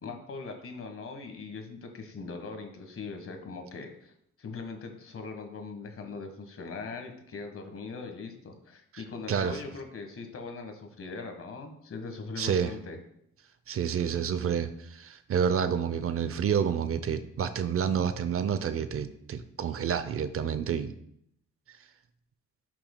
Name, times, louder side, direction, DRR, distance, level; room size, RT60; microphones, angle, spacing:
voice 1, 0.0-4.1 4.4-13.0, left 4 dB, 45° left, 5 dB, 1.4 m, -40 dB
voice 2, 9.3-9.6 12.4-12.7 13.7-20.9, right 7 dB, 50° right, 12 dB, 0.6 m, -29 dB
11.0 x 6.0 x 2.2 m, 0.73 s
cardioid pair, 90°, 30 cm